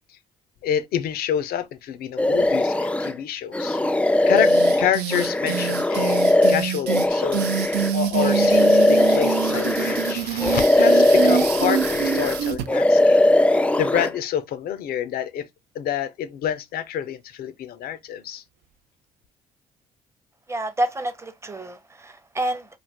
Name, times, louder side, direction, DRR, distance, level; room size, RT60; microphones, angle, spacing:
voice 1, 0.6-3.8 4.2-6.2 6.5-13.2 13.5-15.5 15.7-18.4, left 10 dB, 65° left, 0.5 m, -28 dB
sound 1, 2.2-3.1 3.5-10.2 10.4-12.4 12.7-14.1, left 1 dB, 5° left, 0.3 m, -19 dB
sound 2, 4.4-12.7, right 10 dB, 75° right, 0.4 m, -26 dB
voice 2, 20.5-22.7, right 1 dB, 15° right, 0.7 m, -28 dB
2.4 x 2.4 x 3.3 m
hypercardioid pair, 55°, 17 cm